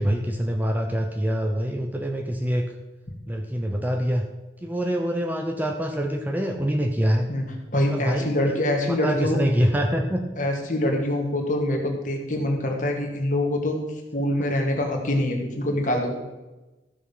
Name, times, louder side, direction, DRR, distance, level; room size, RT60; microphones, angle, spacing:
voice 1, 0.0-2.7 3.3-4.2 4.6-7.3 7.9-8.3 8.9-10.2, equal, 10° right, 3 dB, 0.7 m, -25 dB
voice 2, 7.3-9.4 10.4-13.8 14.1-16.1, left 1 dB, 45° left, 1 dB, 1.9 m, -25 dB
14.0 x 6.2 x 5.6 m, 1.1 s
head